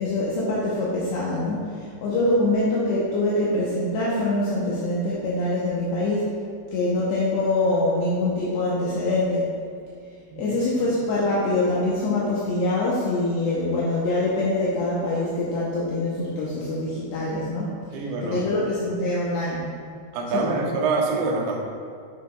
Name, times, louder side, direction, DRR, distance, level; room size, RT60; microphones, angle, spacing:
voice 1, 0.0-6.4 6.7-9.5 10.4-19.7 20.3-20.7, left 2 dB, 75° left, -6 dB, 2.7 m, -24 dB
voice 2, 17.9-18.4 20.1-21.6, right 3 dB, 75° right, -1 dB, 2.3 m, -25 dB
9.3 x 6.2 x 2.3 m, 2.3 s
omnidirectional pair, 5.3 m